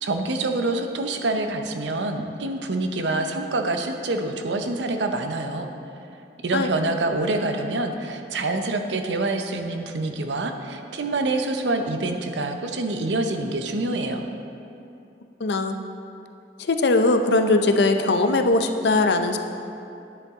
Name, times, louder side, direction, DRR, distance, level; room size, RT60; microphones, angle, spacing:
voice 1, 0.0-5.7 6.4-14.3, right 2 dB, 85° right, 6 dB, 0.7 m, -26 dB
voice 2, 15.4-15.8 16.6-19.4, left 2 dB, 70° left, 6 dB, 0.5 m, -20 dB
10.0 x 7.9 x 3.6 m, 2.7 s
head